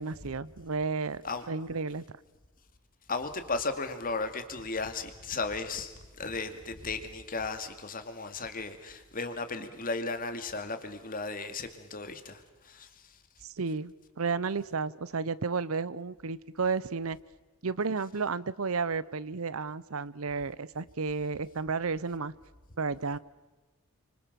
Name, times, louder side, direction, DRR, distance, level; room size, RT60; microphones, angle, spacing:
voice 1, 0.0-1.2 1.5-2.0 13.4-17.2 17.6-22.3 22.8-23.2, right 4 dB, 70° right, 0.8 m, -32 dB
voice 2, 3.1-13.2, left 3 dB, 40° left, 2.4 m, -35 dB
29.5 x 25.5 x 6.9 m
head